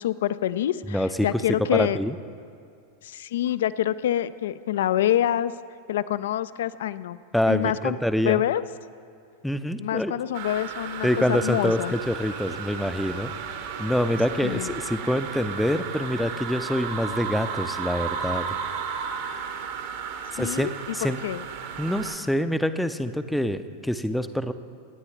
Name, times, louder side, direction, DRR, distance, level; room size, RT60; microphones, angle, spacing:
voice 1, 0.0-2.0 3.0-5.5 5.9-7.2 7.5-8.0 8.3-8.6 9.8-11.9 14.4-14.8 20.4-21.0 21.2-21.4, left 12 dB, 60° left, 17 dB, 0.3 m, -26 dB
voice 2, 0.9-1.4 1.7-2.2 7.3-8.4 9.4-10.1 11.0-13.3 13.8-18.6 20.3-20.7 20.9-21.2 21.8-24.5, equal, ahead, 11 dB, 0.5 m, -26 dB
sound 1, 10.3-22.2, right 6 dB, 50° right, 1.0 m, -34 dB
25.0 x 9.6 x 3.1 m, 2.3 s
figure-of-eight pair, 90°, 0 cm